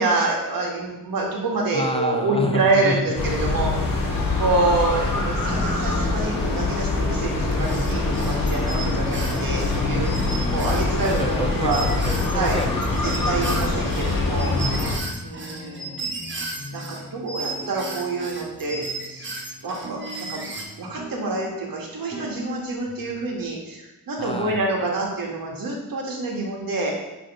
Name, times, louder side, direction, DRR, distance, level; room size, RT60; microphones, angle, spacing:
voice 1, 0.0-10.1 10.5-11.9 12.3-12.6 13.0-14.6 15.2-16.1 16.7-19.3 19.6-20.4 20.8-26.9, right 3 dB, 75° right, -1 dB, 1.9 m, -26 dB
voice 2, 1.7-3.2 9.8-13.8 14.5-15.3 24.2-24.6, left 1 dB, 15° left, 4 dB, 0.4 m, -30 dB
sound 1, 3.1-15.0, left 3 dB, 70° left, 1.5 m, -24 dB
sound 2, 5.2-23.2, equal, 20° right, 1.7 m, -40 dB
sound 3, 7.5-17.0 17.3-20.6, right 3 dB, 35° right, 1.0 m, -35 dB
9.4 x 3.5 x 4.9 m, 0.99 s
wide cardioid pair, 175°, 35 cm